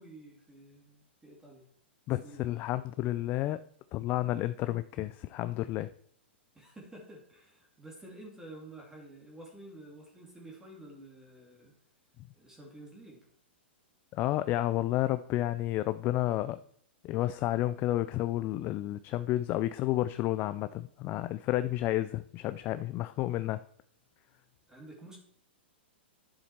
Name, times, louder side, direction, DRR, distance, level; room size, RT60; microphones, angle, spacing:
voice 1, 0.0-1.7 2.2-2.5 6.5-11.7 12.3-13.2 24.7-25.2, right 1 dB, 10° right, 2.5 m, -50 dB
voice 2, 2.1-3.6 3.9-5.9 14.1-16.6 17.0-23.6, left 15 dB, 35° left, 0.4 m, -31 dB
10.0 x 7.3 x 4.4 m
hypercardioid pair, 120°, 6 cm